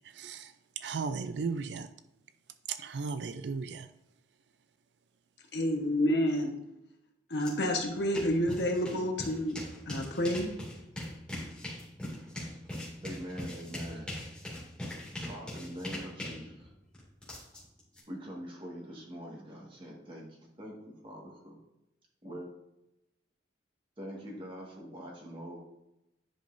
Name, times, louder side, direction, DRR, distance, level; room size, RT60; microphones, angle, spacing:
voice 1, 0.2-0.5 0.8-1.9 2.7-3.9, right 5 dB, 65° right, 11 dB, 0.4 m, -35 dB
voice 2, 5.5-6.5 7.3-9.6 9.9-10.5, equal, 60° left, 2 dB, 1.2 m, -29 dB
sound 1, 7.4-7.5 7.8-18.0, left 1 dB, 5° left, 2.2 m, -41 dB
voice 3, 13.0-14.1 15.1-16.7 18.1-20.3 20.6-21.6 22.2-22.5 24.0-25.6, equal, 30° right, -2 dB, 1.7 m, -43 dB
10.5 x 5.4 x 2.6 m, 0.89 s
head